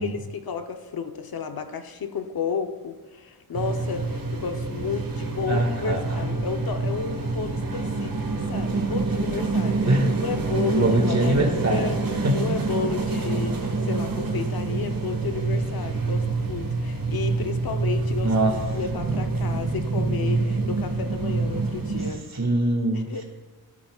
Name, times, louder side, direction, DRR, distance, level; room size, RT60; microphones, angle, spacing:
voice 1, 0.0-9.9 10.2-12.0 12.3-22.2 22.9-23.2, left 5 dB, 70° left, 6 dB, 0.9 m, -32 dB
sound 1, 3.5-22.1, right 3 dB, 65° right, 1.6 m, -27 dB
voice 2, 5.5-6.3 9.8-10.1 10.7-11.9 12.2-12.4 18.2-18.6 22.3-23.2, right 1 dB, 45° right, 2 dB, 1.9 m, -23 dB
16.5 x 8.4 x 2.4 m, 1.4 s
wide cardioid pair, 140°, 38 cm